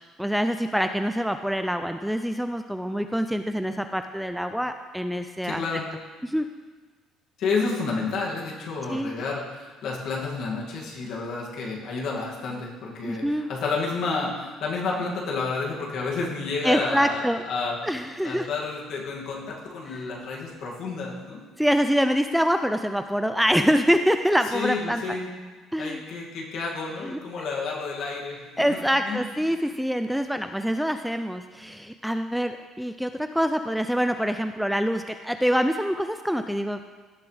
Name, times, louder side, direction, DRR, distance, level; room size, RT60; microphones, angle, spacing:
voice 1, 0.2-5.6 6.2-6.5 8.9-9.1 13.0-13.5 16.6-17.4 17.8-18.5 19.9-20.1 21.6-25.0 25.7-26.0 27.0-27.2 28.6-36.8, equal, ahead, 7 dB, 0.3 m, -25 dB
voice 2, 5.4-5.9 7.4-17.9 18.2-21.4 24.5-25.3 25.8-28.4 28.7-28.8 29.1-29.2, left 4 dB, 55° left, -3 dB, 2.3 m, -30 dB
17.0 x 7.0 x 3.4 m, 1.4 s
cardioid pair, 155°, 0 cm